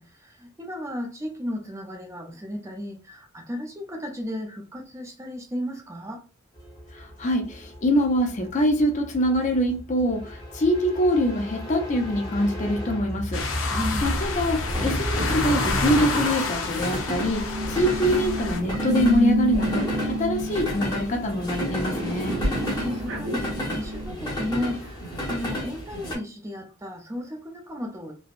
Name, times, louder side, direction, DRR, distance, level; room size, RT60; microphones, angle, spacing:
voice 1, 0.0-6.2 13.7-14.3 22.6-28.1, left 1 dB, 15° right, 0.5 m, -34 dB
sound 1, 6.6-26.2, equal, 20° left, 1.1 m, -31 dB
voice 2, 6.9-13.5 14.0-22.4, equal, 35° left, 0.5 m, -24 dB
sound 2, 13.3-18.6, left 3 dB, 80° left, 0.7 m, -29 dB
sound 3, 17.2-24.1, equal, 65° right, 0.7 m, -30 dB
3.3 x 2.1 x 2.4 m
head